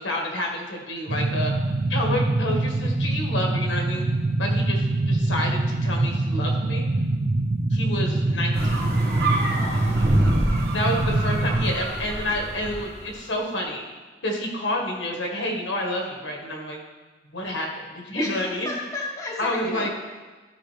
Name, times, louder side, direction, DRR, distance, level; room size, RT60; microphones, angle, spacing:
voice 1, 0.0-1.5 1.9-4.1 4.4-6.9 7.7-8.8 10.7-13.8 14.2-16.8 17.3-18.7 19.4-19.9, left 1 dB, 75° left, 1 dB, 1.5 m, -29 dB
sound 1, 1.1-11.7, right 2 dB, 35° right, 0.4 m, -24 dB
sound 2, 8.5-13.1, right 1 dB, 55° right, 1.5 m, -26 dB
voice 2, 9.5-10.4 18.1-19.9, left 2 dB, 15° left, -3 dB, 1.0 m, -34 dB
13.0 x 5.1 x 3.4 m, 1.3 s
head